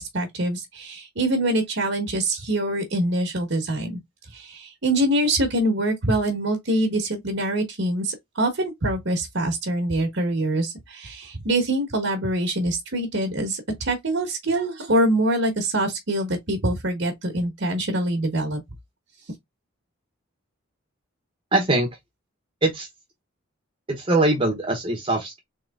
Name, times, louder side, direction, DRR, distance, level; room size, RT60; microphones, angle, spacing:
voice 1, 0.0-4.0 4.3-18.6, right 1 dB, 60° right, 1.1 m, -24 dB
voice 2, 21.5-21.9 22.6-22.9 24.0-25.4, right 2 dB, 25° right, 1.0 m, -22 dB
3.8 x 3.0 x 3.4 m
head